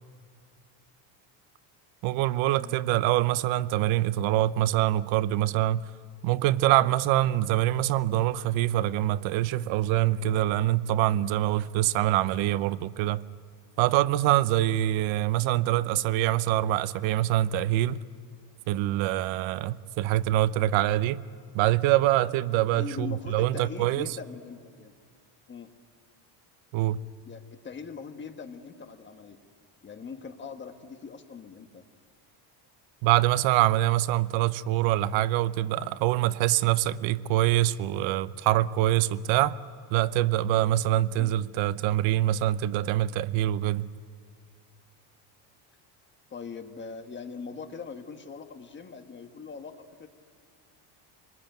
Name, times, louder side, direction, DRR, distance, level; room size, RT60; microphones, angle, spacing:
voice 1, 2.0-5.9 6.2-13.2 13.8-18.0 18.7-21.2 21.5-24.2 26.7-27.0 33.0-39.6 39.9-43.9, right 14 dB, 65° right, 0.8 m, -25 dB
voice 2, 22.7-24.9 25.5-25.7 27.2-29.4 29.8-31.8 41.2-41.3 46.3-50.1, left 5 dB, 20° left, 1.4 m, -41 dB
24.0 x 20.5 x 9.1 m
cardioid pair, 160°, 50 cm